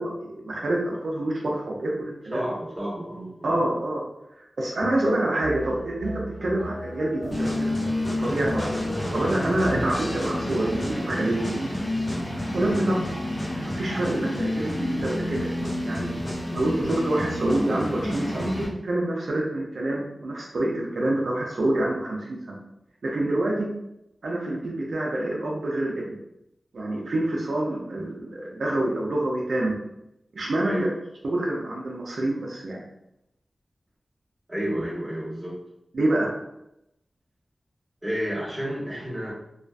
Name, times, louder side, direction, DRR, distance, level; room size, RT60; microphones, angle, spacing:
voice 1, 0.0-2.4 3.4-4.0 4.4-6.1 6.4-7.7 8.1-11.7 12.5-13.0 13.6-16.1 16.5-22.6 23.0-23.7 24.2-26.0 26.7-29.8 30.3-30.7 31.2-32.8 35.9-36.3, right 1 dB, 80° right, -3 dB, 0.5 m, -27 dB
voice 2, 2.3-3.5 6.3-6.5 9.7-9.8 12.8-13.1 30.6-30.9 34.5-35.6 38.0-39.3, equal, 15° right, -7 dB, 1.2 m, -30 dB
sound 1, 4.8-11.2, equal, 85° left, 0.9 m, -37 dB
sound 2, 7.3-18.7, left 1 dB, 30° left, 1.0 m, -29 dB
2.4 x 2.4 x 2.2 m, 0.83 s
cardioid pair, 50°, 0 cm